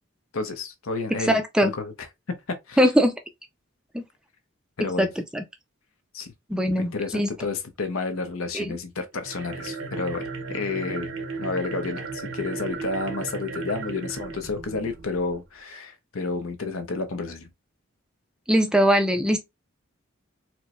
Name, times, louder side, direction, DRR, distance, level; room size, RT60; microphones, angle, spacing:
voice 1, 0.3-1.9 2.7-2.9 4.8-5.1 6.1-6.3 6.8-11.1 11.4-17.5, left 3 dB, 85° left, 0.7 m, -31 dB
voice 2, 1.2-1.7 2.8-3.1 3.9-4.0 4.8-5.4 6.5-7.3 8.5-8.8 18.5-19.4, equal, 5° right, 0.4 m, -21 dB
sound 1, 9.1-15.4, right 4 dB, 75° right, 0.8 m, -35 dB
4.4 x 2.1 x 2.5 m
head